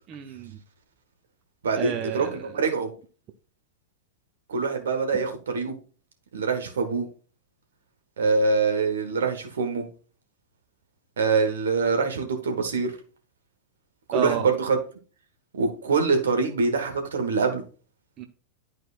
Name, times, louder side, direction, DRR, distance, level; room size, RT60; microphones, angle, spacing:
voice 1, 0.1-0.6 1.7-2.4 14.1-14.5 18.2-18.3, right 9 dB, 35° right, 0.7 m, -30 dB
voice 2, 1.6-2.9 4.5-5.7 6.3-7.1 8.2-9.8 11.2-12.9 14.1-14.8 15.5-17.6, right 4 dB, 65° right, 1.3 m, -24 dB
11.0 x 4.4 x 2.5 m
figure-of-eight pair, 90°, 0 cm